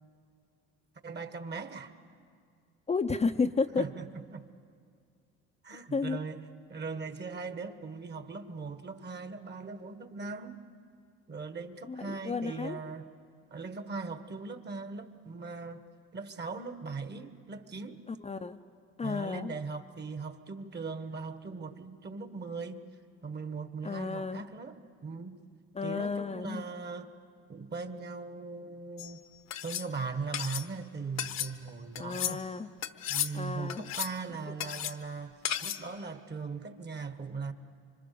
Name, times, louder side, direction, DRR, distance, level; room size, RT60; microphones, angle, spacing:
voice 1, 1.0-1.9 3.8-4.1 4.3-4.5 5.6-6.4 6.7-10.6 11.3-13.1 13.5-15.8 16.1-18.0 19.0-22.8 23.2-25.4 25.8-27.1 27.5-29.2 29.6-32.5 33.1-37.5, right 4 dB, 35° right, 9 dB, 1.5 m, -39 dB
voice 2, 2.9-3.8 5.9-6.2 11.9-12.8 18.1-18.6 19.0-19.5 23.8-24.4 25.7-26.6 32.0-32.7 33.3-33.8 34.5-34.6, left 4 dB, 20° left, 6 dB, 0.7 m, -32 dB
sound 1, 29.0-29.1 29.5-29.9 30.3-30.7 31.2-31.5 31.9-32.4 32.8-33.3 33.7-34.2 34.6-34.9 35.4-35.8, left 10 dB, 60° left, 1.1 m, -34 dB
26.0 x 25.0 x 6.9 m, 2.2 s
supercardioid pair, 85°, 30 cm